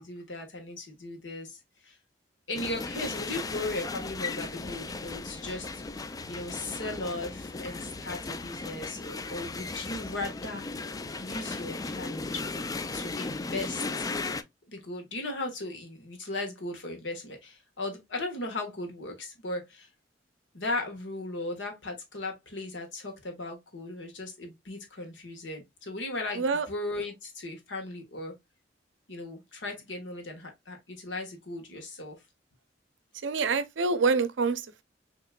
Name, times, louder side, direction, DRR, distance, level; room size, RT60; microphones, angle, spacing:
voice 1, 0.0-2.0 2.5-10.7 11.2-12.4 12.9-14.1 14.7-19.9 20.5-28.3 29.1-32.2, left 2 dB, 75° left, 1.5 m, -37 dB
sound 1, 2.5-14.4, left 3 dB, 20° left, 0.3 m, -36 dB
voice 2, 33.2-34.8, right 4 dB, 85° right, 0.6 m, -26 dB
5.8 x 3.0 x 2.3 m
head